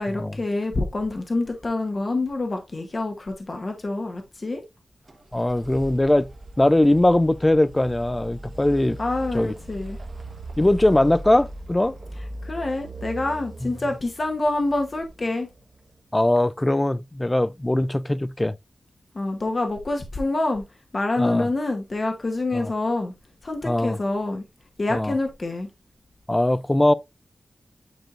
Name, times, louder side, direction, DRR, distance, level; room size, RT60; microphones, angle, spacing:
voice 1, 0.0-4.6 9.0-10.0 12.4-15.5 19.1-20.6 20.9-23.1 23.4-24.4 24.8-25.7, left 2 dB, 35° left, 0.9 m, -26 dB
sound 1, 5.1-15.9, right 1 dB, 35° right, 1.1 m, -39 dB
voice 2, 5.3-6.3 6.6-9.0 9.3-9.5 10.6-11.9 13.6-13.7 16.1-18.6 21.2-21.5 22.5-22.7 23.6-24.0 24.9-25.1 26.3-26.9, left 1 dB, 15° left, 0.3 m, -20 dB
9.2 x 4.4 x 2.4 m
wide cardioid pair, 135°, 0 cm